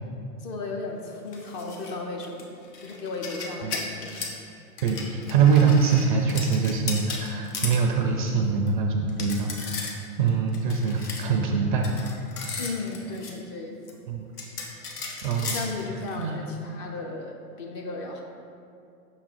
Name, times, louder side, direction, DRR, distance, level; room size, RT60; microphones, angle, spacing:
voice 1, 0.4-2.5 2.8-4.2 12.6-13.8 15.4-18.2, left 3 dB, 30° left, 1 dB, 0.5 m, -35 dB
sound 1, 1.3-1.9 2.2-4.4 4.8-7.8 8.3-8.4 8.7-8.8 9.1-10.0 10.3-11.3 11.8-13.3 13.9-14.0 14.4-16.2, left 4 dB, 75° left, 1.1 m, -36 dB
voice 2, 4.8-12.0 14.1-14.5 15.2-15.6 16.2-16.5, right 5 dB, 35° right, 2 dB, 0.4 m, -24 dB
5.7 x 3.7 x 4.4 m, 2.5 s
hypercardioid pair, 115°, 47 cm